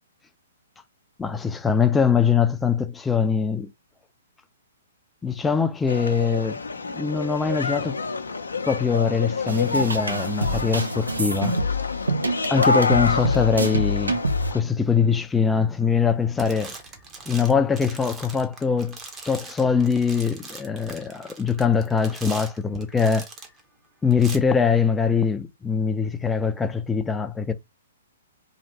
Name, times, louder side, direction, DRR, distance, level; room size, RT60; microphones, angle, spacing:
voice 1, 1.2-3.7 5.2-6.6 6.9-8.0 8.7-11.5 12.5-14.2 14.5-16.7 17.3-19.0 19.2-23.3 24.0-27.5, left 6 dB, 10° left, 0.4 m, -22 dB
sound 1, 5.9-14.6, left 3 dB, 85° left, 0.5 m, -28 dB
sound 2, 9.5-14.5, equal, 90° right, 0.6 m, -26 dB
sound 3, 15.9-16.1 16.4-23.6 24.1-24.4, right 3 dB, 20° right, 0.8 m, -41 dB
3.1 x 2.4 x 2.8 m
hypercardioid pair, 125°, 0 cm